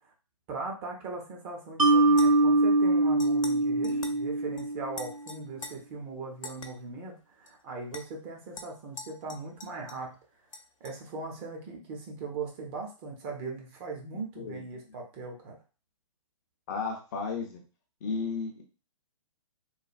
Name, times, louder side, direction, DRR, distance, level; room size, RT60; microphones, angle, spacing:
voice 1, 0.5-10.1 10.8-15.6, right 4 dB, 25° right, 0 dB, 0.7 m, -39 dB
Mallet percussion, 1.8-5.1, right 2 dB, 80° right, 0.6 m, -23 dB
sound 1, 2.1-2.6 3.2-3.6 3.8-4.2 4.6-4.7 4.9-5.7 6.4-6.7 7.5-7.6 7.9-8.0 8.6-10.1 10.5-11.0, left 3 dB, 70° left, 0.6 m, -44 dB
voice 2, 14.4-14.8 16.7-17.6 18.0-18.6, left 5 dB, 35° left, 2 dB, 0.6 m, -34 dB
3.2 x 2.2 x 2.5 m, 0.32 s
figure-of-eight pair, 125°, 17 cm